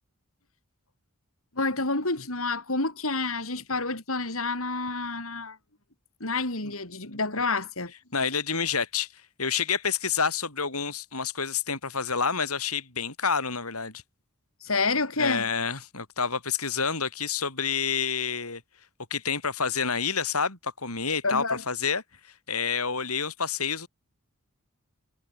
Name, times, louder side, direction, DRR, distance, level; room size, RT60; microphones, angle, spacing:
voice 1, 1.5-5.6 6.2-7.9 14.6-15.5 21.2-21.6, left 3 dB, 70° left, 5.8 m, -28 dB
voice 2, 8.1-9.1 9.4-14.0 15.2-18.6 19.1-23.9, left 6 dB, 90° left, 7.4 m, -28 dB
head